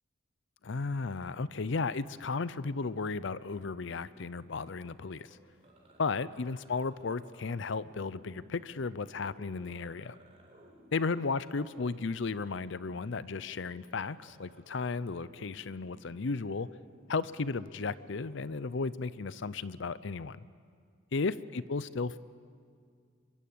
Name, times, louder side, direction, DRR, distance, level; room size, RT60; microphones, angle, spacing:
voice 1, 0.6-5.3 6.0-10.2 10.9-16.7 17.1-20.4 21.1-22.2, left 4 dB, 60° left, 17 dB, 0.6 m, -34 dB
sound 1, 2.4-19.6, right 1 dB, 30° right, 4.3 m, -59 dB
24.0 x 23.5 x 8.6 m, 2.2 s
head